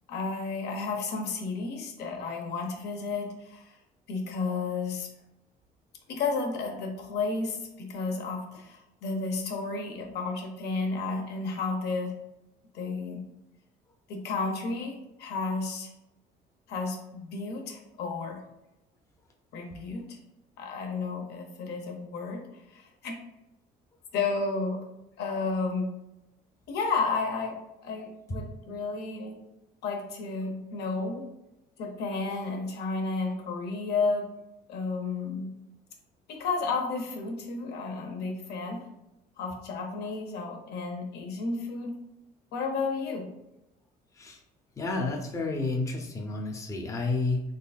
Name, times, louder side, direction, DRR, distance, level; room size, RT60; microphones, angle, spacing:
voice 1, 0.1-3.7 4.1-5.1 6.1-12.1 12.7-13.2 14.1-15.9 16.7-18.4 19.5-20.2 20.6-22.4 22.7-23.2 24.1-24.8 25.2-25.9 26.7-29.4 29.8-31.3 31.8-34.3 34.7-35.5 36.3-38.8 39.4-42.0 42.5-43.3, left 4 dB, 75° left, 2 dB, 0.8 m, -32 dB
voice 2, 44.8-47.4, left 3 dB, 20° left, 2 dB, 0.5 m, -30 dB
3.8 x 3.3 x 2.3 m, 0.89 s
cardioid pair, 110°, 17 cm